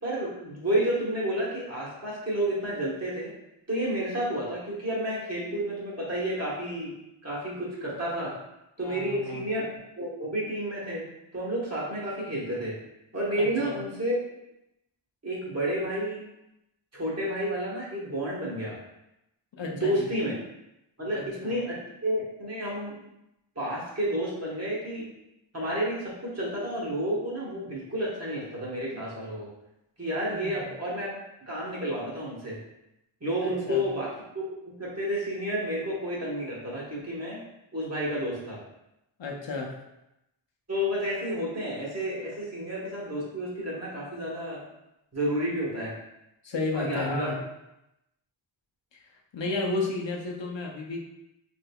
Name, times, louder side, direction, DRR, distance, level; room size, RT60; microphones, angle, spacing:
voice 1, 0.0-3.3 3.7-6.9 7.2-8.4 8.8-9.6 10.0-12.7 13.1-14.2 15.2-16.2 16.9-18.8 19.7-20.3 21.0-23.0 23.5-25.1 25.5-29.5 30.0-31.1 31.5-32.6 33.2-34.1 34.3-37.4 37.7-38.6 40.7-44.6 45.1-45.9 46.7-47.3, equal, 35° right, -6 dB, 1.2 m, -30 dB
voice 2, 8.8-9.4 13.3-13.7 19.6-20.1 21.1-21.5 30.4-30.7 33.4-33.8 39.2-39.7 46.4-47.4 48.9-49.0 49.3-51.1, left 3 dB, 65° left, -1 dB, 0.7 m, -32 dB
3.4 x 3.4 x 2.3 m, 0.87 s
wide cardioid pair, 70°, 47 cm